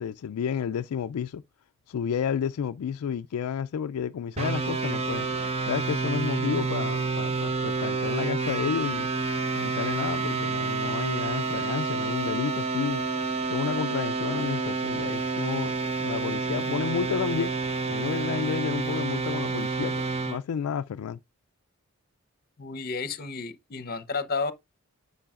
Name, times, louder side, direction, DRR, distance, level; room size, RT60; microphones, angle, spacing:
voice 1, 0.0-1.4 1.9-5.3 5.7-9.1 9.5-13.1 13.4-15.7 16.0-17.5 17.9-21.2, left 7 dB, 80° left, 0.3 m, -31 dB
sound 1, 4.4-20.4, right 4 dB, 25° right, 0.6 m, -29 dB
voice 2, 22.6-24.5, left 4 dB, 40° left, 0.8 m, -31 dB
10.0 x 6.9 x 2.4 m
head